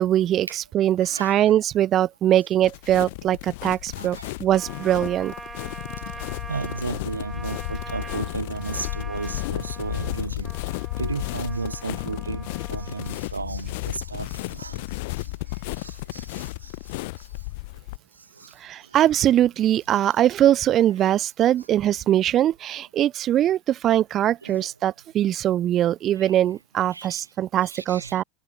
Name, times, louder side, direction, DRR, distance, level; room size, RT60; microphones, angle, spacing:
voice 1, 0.0-5.3 18.6-28.2, right 12 dB, 40° right, 0.3 m, -22 dB
voice 2, 1.0-1.5 3.2-3.3 4.0-4.3 6.5-10.5 11.0-14.8 15.8-16.5 19.0-19.1 24.4-24.7 26.2-26.3 26.9-27.2 27.7-28.2, right 4 dB, 85° right, 0.6 m, -34 dB
sound 1, 2.6-18.0, left 23 dB, 60° left, 0.6 m, -33 dB
Trumpet, 4.5-13.2, right 3 dB, 15° right, 3.5 m, -42 dB
figure-of-eight pair, 75°, 0 cm